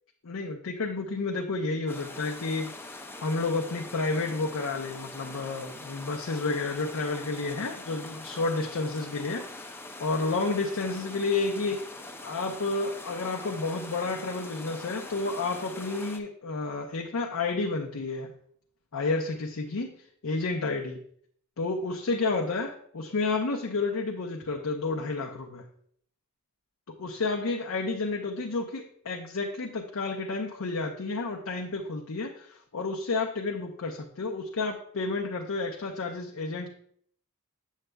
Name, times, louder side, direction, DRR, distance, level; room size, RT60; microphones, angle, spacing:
voice 1, 0.2-11.9 12.2-18.3 18.9-19.9 20.2-21.0 21.6-25.6 27.0-36.7, left 3 dB, 65° left, 1 dB, 0.6 m, -31 dB
sound 1, 1.9-16.2, left 2 dB, 10° left, 0.4 m, -43 dB
7.7 x 7.3 x 2.2 m, 0.63 s
head